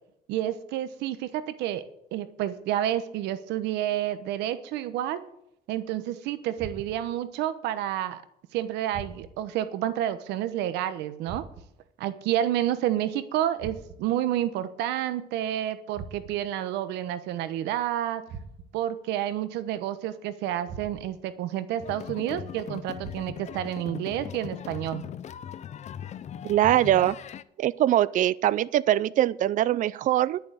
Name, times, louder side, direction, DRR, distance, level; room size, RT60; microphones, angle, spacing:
voice 1, 0.3-1.9 2.1-5.2 5.7-8.2 8.5-11.4 12.0-18.2 18.7-25.0, right 12 dB, 90° right, 12 dB, 1.1 m, -29 dB
sound 1, 6.6-7.2 8.9-9.6 11.3-11.9 13.6-14.2 15.9-16.6 18.3-18.9 20.7-21.3 23.0-23.6, right 5 dB, 70° right, 1.6 m, -43 dB
sound 2, 21.8-27.4, left 9 dB, 45° left, 0.6 m, -39 dB
voice 2, 26.4-27.2 27.6-30.4, right 13 dB, 50° right, 19 dB, 0.4 m, -22 dB
11.0 x 7.0 x 8.1 m, 0.76 s
cardioid pair, 110°, 17 cm